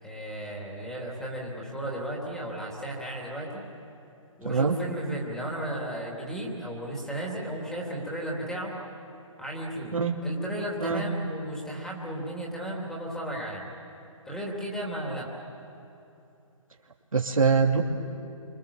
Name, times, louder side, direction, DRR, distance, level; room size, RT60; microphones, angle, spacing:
voice 1, 0.0-3.6 4.4-8.7 9.4-9.9 10.2-13.7 14.3-15.3 15.6-15.7, right 1 dB, 5° left, -3 dB, 3.3 m, -34 dB
voice 2, 17.1-17.8, right 5 dB, 85° right, 1 dB, 2.6 m, -23 dB
27.0 x 26.0 x 7.3 m, 2.8 s
figure-of-eight pair, 150°, 17 cm